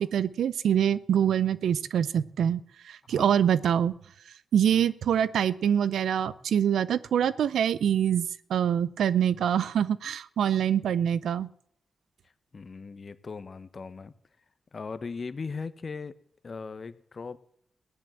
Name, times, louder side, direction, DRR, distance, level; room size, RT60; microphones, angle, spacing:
voice 1, 0.0-3.9 4.5-11.5, right 9 dB, 80° right, 17 dB, 0.6 m, -25 dB
voice 2, 3.1-3.4 12.5-14.1 14.7-16.1 16.4-17.4, left 4 dB, 55° left, 13 dB, 1.2 m, -38 dB
16.5 x 10.5 x 7.4 m, 0.66 s
supercardioid pair, 40°, 0 cm